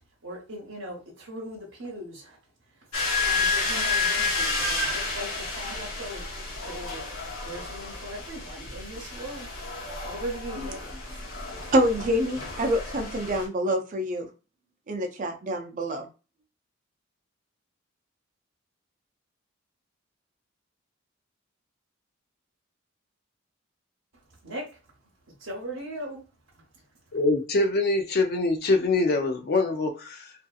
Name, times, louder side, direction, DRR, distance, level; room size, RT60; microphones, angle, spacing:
voice 1, 0.2-2.4 2.8-2.9 3.2-6.2 6.6-7.0 7.4-9.5 10.0-10.8 24.4-24.6 25.4-26.2 26.5-26.8, right 1 dB, 70° right, 0.8 m, -39 dB
sound 1, 2.9-13.5, left 3 dB, 80° left, 0.8 m, -30 dB
voice 2, 11.4-14.3 14.9-16.1, equal, 40° right, 0.5 m, -26 dB
voice 3, 27.1-30.3, left 2 dB, 50° left, 0.4 m, -24 dB
2.7 x 2.5 x 2.3 m
head